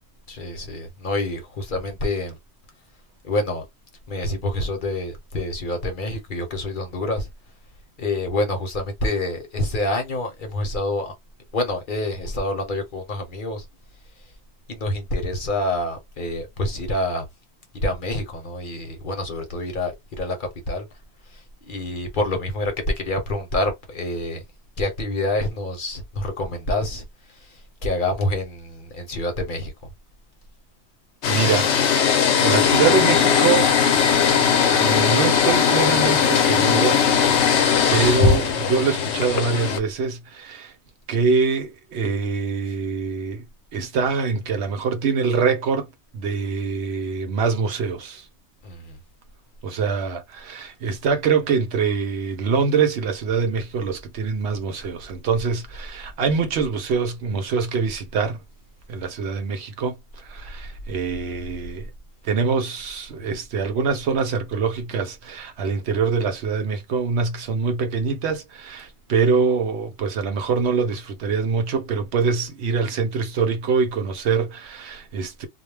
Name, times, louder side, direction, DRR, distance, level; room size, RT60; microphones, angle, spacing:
voice 1, 0.3-2.4 3.2-3.6 4.1-7.3 8.0-11.1 11.5-13.6 14.7-17.2 17.7-20.9 21.3-24.4 24.8-29.7 48.6-49.0, left 1 dB, 50° left, 0.9 m, -27 dB
sound 1, 31.2-39.8, left 7 dB, 80° left, 0.9 m, -19 dB
voice 2, 31.3-31.7 32.4-33.7 34.7-37.0 37.9-40.7 41.1-43.4 43.7-45.9 46.1-48.3 49.6-58.4 58.9-61.9 62.2-75.5, right 5 dB, 75° right, 0.9 m, -24 dB
2.3 x 2.1 x 3.2 m
omnidirectional pair, 1.1 m